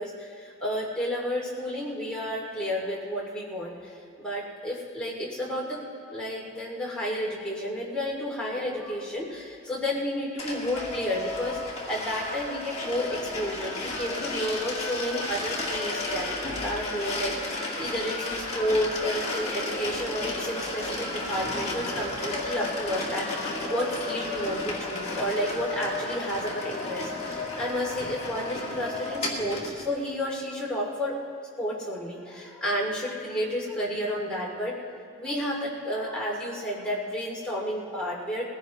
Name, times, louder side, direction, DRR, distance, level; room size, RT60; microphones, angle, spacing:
voice 1, 0.0-5.8 6.1-16.3 16.6-31.2 31.6-34.7 35.2-38.4, equal, 5° left, -5 dB, 2.5 m, -31 dB
sound 1, 10.4-29.9, left 2 dB, 30° left, 1.9 m, -33 dB
21.5 x 16.0 x 3.1 m, 2.5 s
head